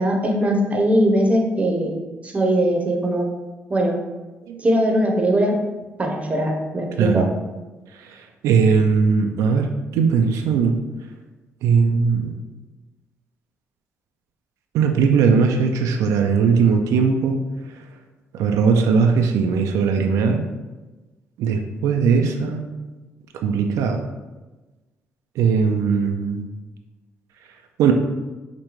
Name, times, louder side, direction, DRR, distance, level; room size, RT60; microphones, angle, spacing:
voice 1, 0.0-2.0 2.2-3.3 3.7-4.0 4.6-5.6 6.0-7.3, right 1 dB, 25° right, 2 dB, 0.7 m, -20 dB
voice 2, 8.0-10.8 11.6-12.3 14.7-17.4 18.3-20.4 21.4-22.6 23.3-24.0 25.4-26.5 27.8-27.9, right 5 dB, 85° right, 4 dB, 0.3 m, -19 dB
5.0 x 2.2 x 3.0 m, 1.2 s
cardioid pair, 95°, 5 cm